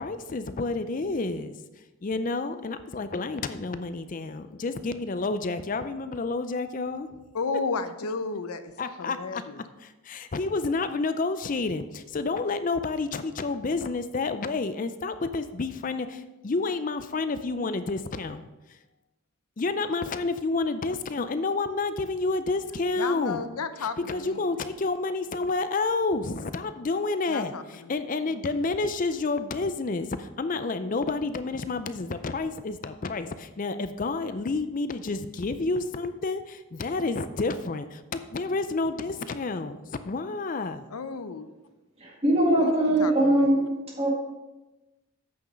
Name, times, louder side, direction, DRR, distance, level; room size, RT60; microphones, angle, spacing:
voice 1, 0.0-1.6 2.0-7.1 8.8-9.4 9.8-18.8 19.6-23.4 23.8-40.9, left 3 dB, 35° left, 11 dB, 0.4 m, -29 dB
voice 2, 7.3-8.7 9.0-9.6 23.0-24.4 27.3-27.9 40.9-41.5 42.6-42.7 43.0-43.5, left 4 dB, 90° left, 10 dB, 0.6 m, -33 dB
voice 3, 42.0-43.7 44.0-44.1, right 1 dB, 25° right, -2 dB, 1.8 m, -21 dB
8.6 x 6.1 x 5.2 m, 1.1 s
head